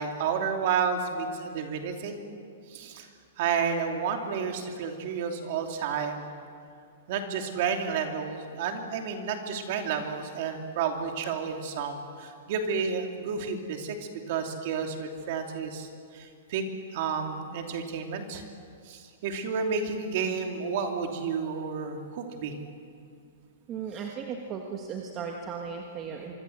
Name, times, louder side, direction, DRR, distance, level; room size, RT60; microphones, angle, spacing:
voice 1, 0.0-2.2 2.7-3.1 3.4-6.3 7.1-16.6 16.9-18.4 18.9-22.5, right 6 dB, 40° right, 4 dB, 2.8 m, -31 dB
voice 2, 23.7-26.3, right 6 dB, 20° right, 2 dB, 1.4 m, -36 dB
25.5 x 24.5 x 7.9 m, 2.3 s
hypercardioid pair, 180°, 0 cm